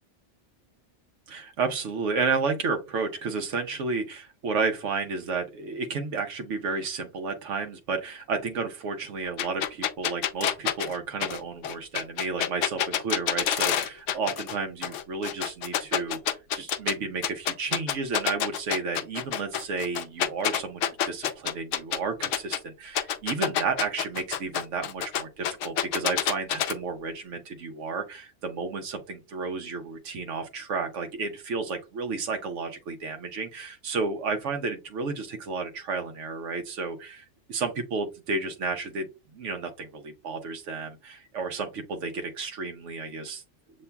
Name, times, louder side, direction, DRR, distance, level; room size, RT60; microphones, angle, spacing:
voice 1, 1.3-39.1 39.3-43.4, right 4 dB, 85° right, 5 dB, 1.0 m, -32 dB
sound 1, 9.4-14.6 14.8-16.9 17.2-22.6 23.0-26.7, left 10 dB, 85° left, 0.9 m, -27 dB
6.9 x 3.0 x 2.2 m, 0.28 s
omnidirectional pair, 1.2 m